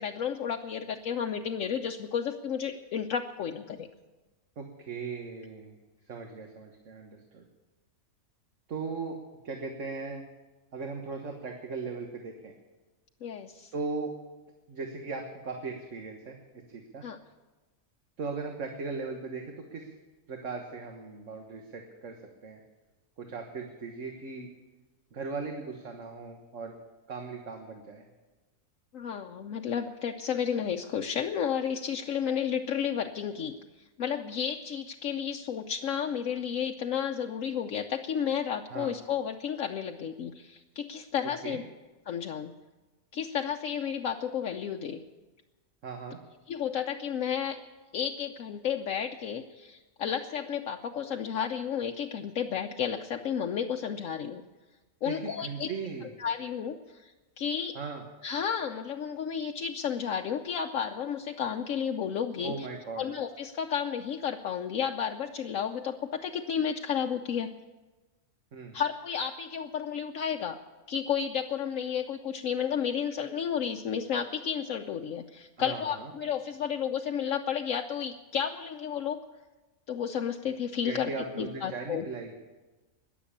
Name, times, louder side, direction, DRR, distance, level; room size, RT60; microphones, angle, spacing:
voice 1, 0.0-3.9 13.2-13.7 17.0-17.2 28.9-33.6 34.0-41.6 42.1-42.5 43.1-45.0 46.5-47.6 47.9-54.4 55.0-55.7 56.2-57.1 57.4-57.8 58.2-62.7 63.0-67.5 68.7-70.6 70.9-79.2 79.9-82.1, left 8 dB, 70° left, 3 dB, 1.1 m, -32 dB
voice 2, 4.6-5.7 6.1-7.5 8.7-9.2 9.4-10.2 10.7-12.6 13.7-14.1 14.7-16.4 16.7-17.0 18.2-19.9 20.3-22.6 23.2-24.5 25.1-26.8 27.1-28.1 38.7-38.9 41.2-41.6 45.8-46.2 55.1-56.1 57.8-58.0 62.4-63.1 68.5-68.8 75.6-76.1 80.8-82.3, right 4 dB, 65° right, 3 dB, 1.7 m, -38 dB
20.5 x 7.4 x 8.6 m, 1.2 s
omnidirectional pair, 1.4 m